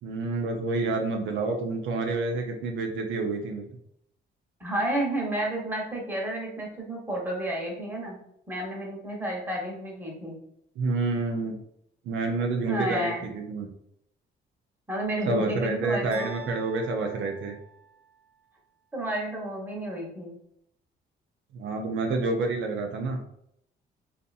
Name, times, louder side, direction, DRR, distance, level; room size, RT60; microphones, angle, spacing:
voice 1, 0.0-3.7 10.8-11.6 12.0-13.7 15.2-17.6 21.5-23.2, right 3 dB, 75° right, 3 dB, 0.5 m, -28 dB
voice 2, 4.6-8.2 8.5-10.4 12.7-13.3 14.9-16.3 18.9-20.3, right 1 dB, 10° right, -2 dB, 1.0 m, -31 dB
sound 1, 16.1-18.2, right 6 dB, 45° right, 0.8 m, -46 dB
2.7 x 2.4 x 2.4 m, 0.74 s
cardioid pair, 90°, 20 cm